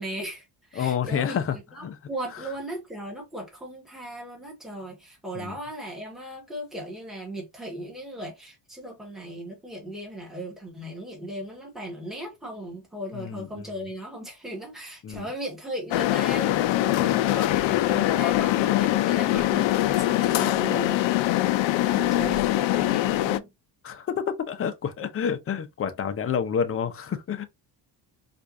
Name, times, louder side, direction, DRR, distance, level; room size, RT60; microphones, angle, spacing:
voice 1, 0.0-21.0 21.9-23.5, right 1 dB, ahead, 1.2 m, -37 dB
voice 2, 0.8-2.0 5.3-5.6 13.1-13.5 15.0-15.3 23.8-27.4, left 7 dB, 30° left, 0.5 m, -29 dB
sound 1, 15.9-23.4, left 15 dB, 75° left, 0.5 m, -23 dB
4.4 x 2.5 x 2.5 m
cardioid pair, 140°, 46 cm